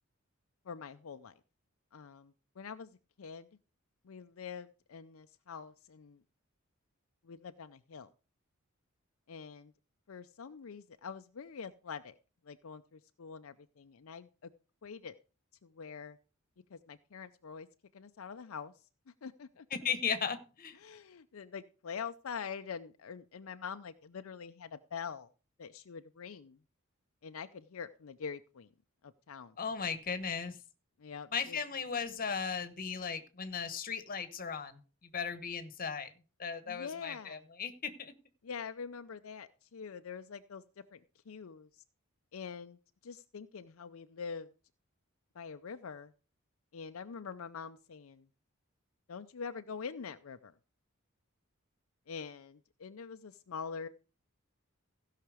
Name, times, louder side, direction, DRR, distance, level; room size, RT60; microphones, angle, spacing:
voice 1, 0.6-1.4 1.9-3.5 4.0-6.2 7.2-8.1 9.3-9.7 10.1-12.2 12.4-14.5 14.8-15.1 15.6-16.2 16.7-17.7 17.9-19.7 20.7-25.3 25.6-26.6 27.2-28.7 29.0-29.6 31.0-31.6 36.7-37.4 38.4-41.8 42.3-44.5 45.3-46.1 46.7-48.3 49.1-50.6 52.1-53.9, left 6 dB, 80° left, 9 dB, 0.5 m, -45 dB
voice 2, 19.7-20.8 29.6-30.6 31.3-36.1 36.4-38.1, left 6 dB, 45° left, 11 dB, 1.1 m, -37 dB
15.5 x 5.8 x 4.9 m, 0.35 s
head